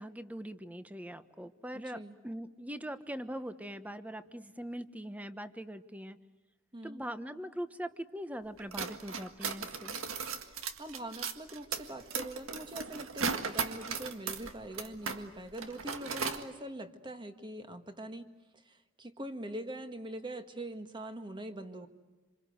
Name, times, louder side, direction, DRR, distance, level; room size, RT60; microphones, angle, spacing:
voice 1, 0.0-6.2 6.8-10.0, equal, 5° right, 11 dB, 1.1 m, -41 dB
voice 2, 1.7-2.2 6.7-7.0 10.5-18.3 18.6-21.9, right 1 dB, 25° right, 7 dB, 1.7 m, -43 dB
sound 1, 8.6-15.2 15.5-16.4, right 5 dB, 85° right, 1.8 m, -37 dB
27.0 x 27.0 x 8.0 m, 1.2 s
head